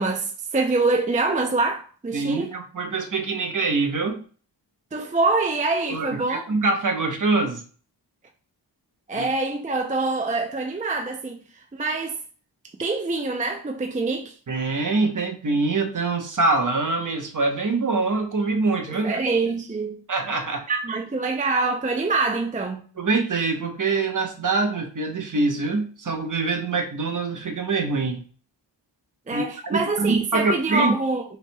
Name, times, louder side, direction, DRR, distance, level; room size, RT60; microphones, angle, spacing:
voice 1, 0.0-2.5 4.9-6.4 9.1-11.4 11.7-12.2 12.8-14.4 18.9-20.0 20.7-22.9 29.3-31.2, right 3 dB, 20° right, 0.5 m, -25 dB
voice 2, 2.1-4.2 5.9-7.6 9.1-9.3 14.5-19.2 20.1-20.6 23.0-28.2 29.3-30.9, right 3 dB, 45° right, 1.0 m, -24 dB
5.5 x 3.3 x 2.2 m
wide cardioid pair, 80°, 44 cm